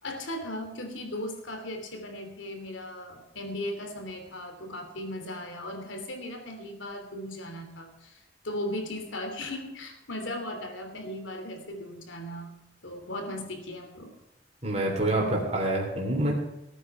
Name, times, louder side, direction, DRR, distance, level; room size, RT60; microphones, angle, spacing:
voice 1, 0.0-12.5 12.8-14.1, left 1 dB, 80° left, 5 dB, 3.0 m, -37 dB
voice 2, 14.6-16.3, right 1 dB, 35° right, -2 dB, 3.3 m, -26 dB
18.0 x 9.2 x 4.7 m, 0.95 s
head